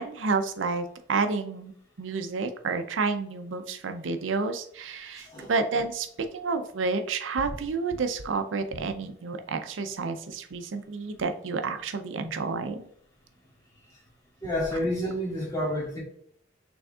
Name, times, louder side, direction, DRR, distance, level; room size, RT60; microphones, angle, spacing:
voice 1, 0.0-6.1 6.3-12.9, right 4 dB, 85° right, 8 dB, 0.5 m, -30 dB
voice 2, 5.0-5.5 14.4-16.0, left 1 dB, 20° left, -5 dB, 1.8 m, -30 dB
6.1 x 3.4 x 2.4 m, 0.66 s
head